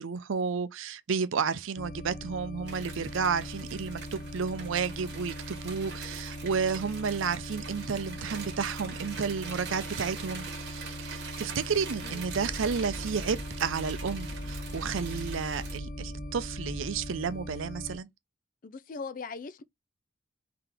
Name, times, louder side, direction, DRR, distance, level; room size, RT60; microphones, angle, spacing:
voice 1, 0.0-18.1, right 6 dB, 85° right, 0.5 m, -32 dB
sound 1, 1.8-18.0, left 1 dB, 60° left, 0.8 m, -41 dB
sound 2, 2.7-15.8, right 6 dB, 55° right, 1.5 m, -44 dB
sound 3, 11.9-17.3, equal, 20° right, 1.2 m, -41 dB
voice 2, 18.6-19.6, left 4 dB, 45° left, 0.4 m, -40 dB
3.8 x 2.9 x 3.4 m
head